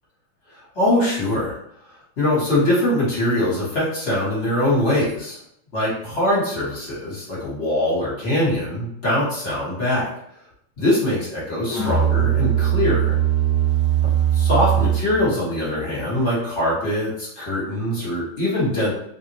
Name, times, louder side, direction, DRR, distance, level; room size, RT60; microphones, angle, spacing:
voice 1, 0.7-1.5 2.2-5.4 5.7-10.1 10.8-13.2 14.0-18.9, left 1 dB, 40° left, -7 dB, 1.4 m, -22 dB
Musical instrument, 11.7-15.2, right 10 dB, 80° left, 1.5 m, -20 dB
3.2 x 2.5 x 2.9 m, 0.73 s
omnidirectional pair, 2.3 m